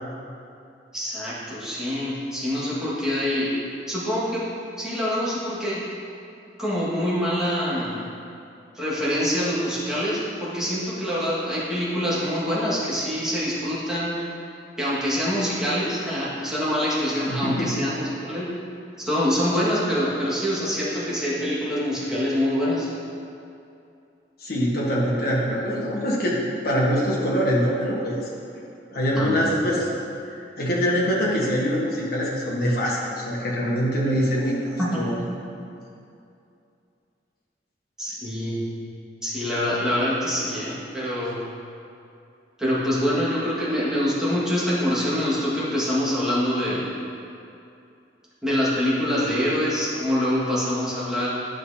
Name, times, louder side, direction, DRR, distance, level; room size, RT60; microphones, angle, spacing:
voice 1, 0.9-3.5 3.9-4.5 4.8-5.8 6.6-8.0 8.7-14.2 14.8-18.5 19.0-22.9 29.1-29.6 34.8-35.0 38.0-38.6 39.2-41.4 42.6-46.9 48.4-51.3, equal, 5° right, -10 dB, 1.8 m, -25 dB
voice 2, 17.3-17.9 24.4-26.4 26.6-28.3 28.9-29.9 30.3-35.2, equal, 60° left, -5 dB, 1.5 m, -24 dB
10.5 x 5.7 x 2.8 m, 2.6 s
head